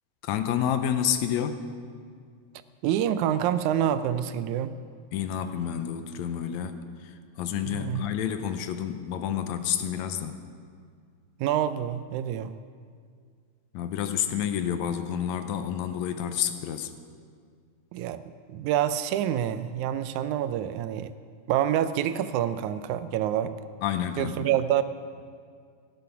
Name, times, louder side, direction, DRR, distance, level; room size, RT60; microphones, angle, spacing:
voice 1, 0.2-1.6 5.1-7.1 7.4-10.4 13.7-16.9 23.8-24.5, left 9 dB, 80° left, 9 dB, 2.0 m, -29 dB
voice 2, 2.8-4.8 7.7-8.1 11.4-12.6 17.9-21.1 21.5-23.6 24.2-24.8, right 10 dB, 90° right, 13 dB, 2.0 m, -27 dB
16.0 x 9.4 x 5.8 m, 2.1 s
omnidirectional pair, 3.3 m